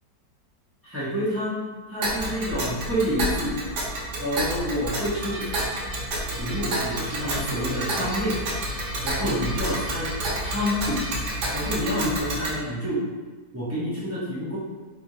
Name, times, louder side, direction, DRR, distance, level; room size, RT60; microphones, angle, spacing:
voice 1, 0.8-3.6 4.2-5.5 6.3-8.4 9.0-11.1 11.5-13.1 13.5-14.6, equal, 15° right, -10 dB, 0.5 m, -28 dB
Tick, 2.0-12.6, right 1 dB, 75° right, 1.4 m, -29 dB
sound 1, 5.1-12.2, right 1 dB, 50° right, 1.0 m, -40 dB
3.4 x 2.7 x 3.0 m, 1.3 s
omnidirectional pair, 1.9 m